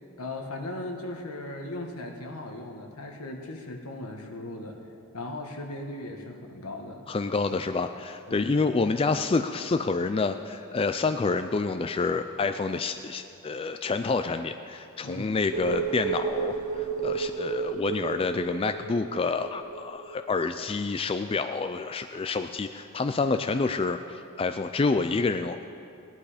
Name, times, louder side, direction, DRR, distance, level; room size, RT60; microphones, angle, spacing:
voice 1, 0.2-4.8 5.1-7.0 8.3-8.7 15.0-15.4, left 2 dB, 80° left, 3 dB, 1.5 m, -38 dB
voice 2, 7.1-25.6, left 4 dB, 25° left, 8 dB, 0.3 m, -28 dB
sound 1, 15.5-20.7 21.0-21.1, right 5 dB, 80° right, 0.9 m, -32 dB
18.0 x 10.5 x 5.0 m, 2.6 s
head